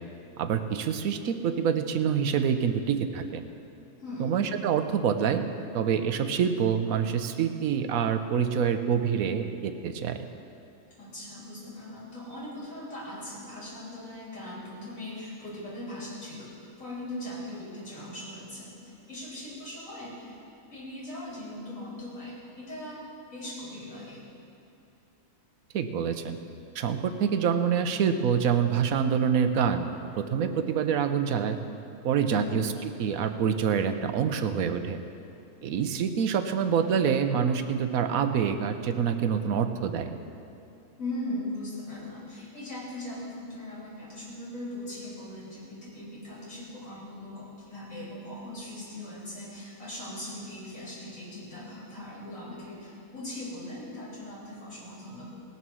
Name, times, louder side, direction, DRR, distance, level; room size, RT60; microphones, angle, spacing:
voice 1, 0.4-3.4 4.2-5.4 5.7-10.2 25.7-26.4 26.7-29.9 30.1-31.6 32.0-35.0 35.6-40.2, right 7 dB, 90° right, 8 dB, 1.2 m, -26 dB
voice 2, 4.0-4.3 11.0-20.4 20.7-23.0 23.3-24.2 32.3-32.6 41.0-55.3, left 1 dB, 75° left, -6 dB, 3.9 m, -40 dB
19.0 x 7.1 x 6.2 m, 2.8 s
omnidirectional pair, 1.4 m